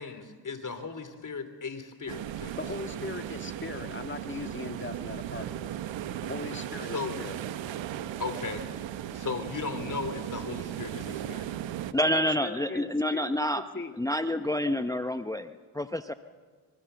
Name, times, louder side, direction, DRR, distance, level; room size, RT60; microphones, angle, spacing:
voice 1, 0.0-2.6 6.8-7.2 8.2-8.7 9.1-11.5, left 4 dB, 45° left, 8 dB, 3.4 m, -36 dB
sound 1, 2.1-11.9, right 11 dB, 85° right, 1.1 m, -37 dB
voice 2, 2.6-5.7 6.2-7.4 12.0-13.3 13.6-13.9 14.7-14.8, left 3 dB, 25° left, 6 dB, 2.0 m, -39 dB
voice 3, 11.9-13.6 14.0-16.1, left 1 dB, 10° left, 10 dB, 0.8 m, -28 dB
25.5 x 23.5 x 7.0 m, 1.6 s
cardioid pair, 70°, 44 cm